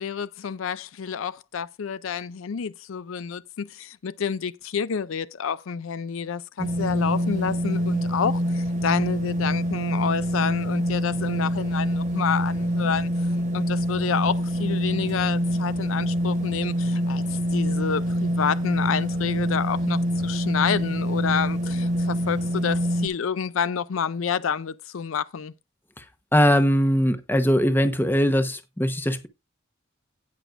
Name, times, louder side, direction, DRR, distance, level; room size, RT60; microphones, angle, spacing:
voice 1, 0.0-13.1 13.5-17.2 17.5-25.5, left 7 dB, 80° left, 0.5 m, -29 dB
sound 1, 6.6-23.1, equal, 35° right, 0.9 m, -25 dB
voice 2, 26.3-29.3, equal, 10° left, 1.0 m, -21 dB
17.0 x 6.1 x 2.5 m
head